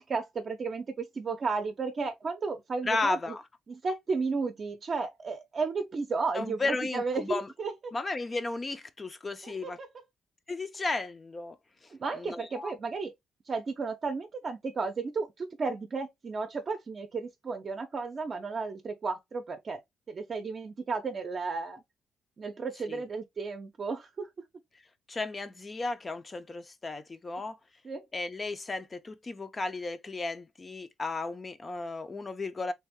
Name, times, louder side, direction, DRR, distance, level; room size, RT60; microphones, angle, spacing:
voice 1, 0.0-3.2 3.7-7.9 9.4-9.9 11.9-13.1 13.5-19.8 20.1-21.8 22.4-24.3 27.8-28.1, right 4 dB, 45° right, 0.6 m, -33 dB
voice 2, 2.9-3.4 6.3-7.5 7.9-9.8 10.5-11.6 12.2-12.7 22.9-23.0 25.1-27.6 28.1-32.7, left 3 dB, 30° left, 0.5 m, -34 dB
3.3 x 2.5 x 3.5 m
cardioid pair, 90°, 0 cm